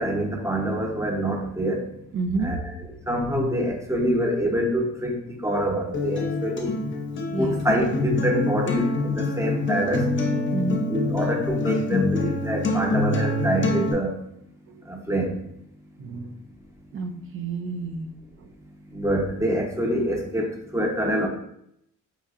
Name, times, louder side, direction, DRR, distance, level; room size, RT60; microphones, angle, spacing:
voice 1, 0.0-1.8 2.4-2.8 3.1-6.8 7.4-10.1 10.9-14.2 14.9-15.4 18.9-21.3, equal, 10° right, 0 dB, 0.8 m, -26 dB
voice 2, 2.1-2.6 7.3-7.6 10.5-10.9 14.7-14.8 16.0-16.4 16.9-18.1 18.4-18.5, right 3 dB, 45° right, 5 dB, 0.5 m, -29 dB
Acoustic guitar, 5.9-13.9, left 2 dB, 40° left, 0.7 m, -25 dB
4.3 x 2.6 x 2.4 m, 0.74 s
cardioid pair, 90°, 30 cm